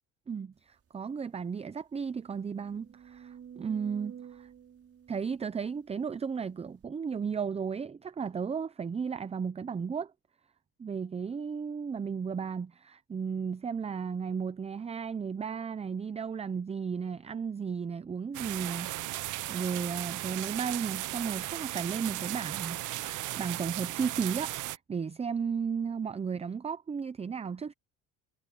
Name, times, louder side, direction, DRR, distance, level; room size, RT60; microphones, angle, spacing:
voice 1, 0.3-4.5 5.1-10.1 10.8-27.7, right 6 dB, 20° right, 0.5 m, -34 dB
sound 1, 0.8-0.9 1.3-1.4 1.9-6.2 6.8-6.9, right 8 dB, 40° right, 5.5 m, -51 dB
sound 2, 18.3-24.8, right 16 dB, 60° right, 0.6 m, -36 dB
cardioid pair, 120°, 36 cm